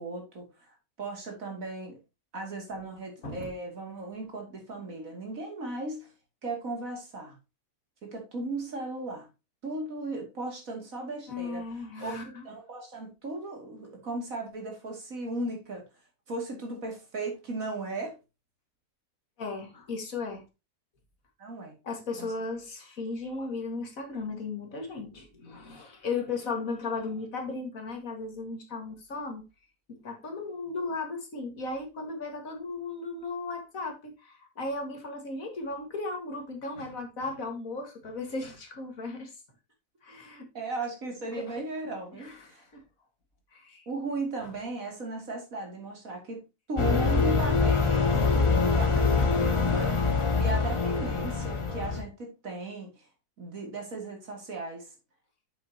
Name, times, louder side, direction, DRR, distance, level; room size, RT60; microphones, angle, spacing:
voice 1, 0.0-2.0 2.3-6.1 6.4-7.4 8.0-9.3 9.6-11.7 12.0-15.8 16.3-18.2 21.4-21.7 22.1-22.3 40.5-42.6 43.9-53.1 53.4-54.9, right 2 dB, 60° right, 2.9 m, -37 dB
voice 2, 11.3-12.4 19.4-20.4 21.8-29.4 29.9-39.3 40.0-40.5 42.2-42.8 43.5-43.9, left 3 dB, 60° left, 2.2 m, -36 dB
sound 1, 46.8-52.0, left 4 dB, 25° left, 1.0 m, -24 dB
8.0 x 7.4 x 2.8 m
omnidirectional pair, 1.6 m